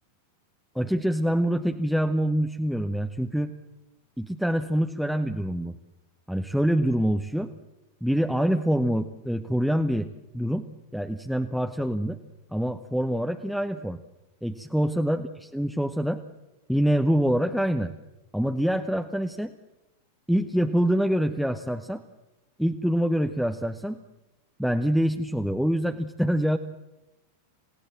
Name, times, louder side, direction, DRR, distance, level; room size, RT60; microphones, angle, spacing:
voice 1, 0.7-3.5 4.2-5.7 6.3-7.5 8.0-10.1 10.3-10.6 10.9-12.2 12.5-14.0 14.4-16.2 16.7-17.9 18.3-19.5 20.3-22.0 22.6-24.0 24.6-26.6, equal, ahead, 6 dB, 1.0 m, -25 dB
28.0 x 17.0 x 7.5 m, 0.99 s
figure-of-eight pair, 90°, 0 cm